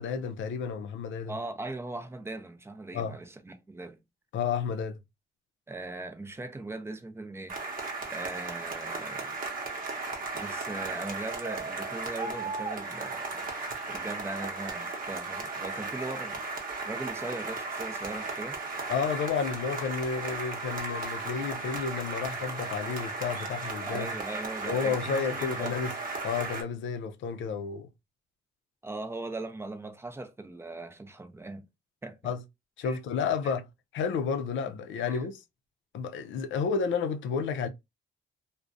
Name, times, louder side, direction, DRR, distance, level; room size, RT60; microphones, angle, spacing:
voice 1, 0.0-1.3 2.9-3.2 4.3-5.0 18.9-24.2 24.7-25.9 26.2-27.9 32.2-32.4 32.8-33.7 33.9-35.4 35.9-37.7, left 6 dB, 70° left, 0.5 m, -31 dB
voice 2, 1.3-4.0 5.7-7.7 8.1-9.4 10.3-13.5 13.9-16.4 16.8-18.6 23.9-25.7 28.8-31.6 32.0-32.3 32.8-33.0 33.4-33.5 35.0-35.2, right 2 dB, 10° right, 0.5 m, -39 dB
sound 1, 7.5-26.6, right 3 dB, 45° right, 0.8 m, -36 dB
2.4 x 2.1 x 2.5 m
cardioid pair, 90°, 20 cm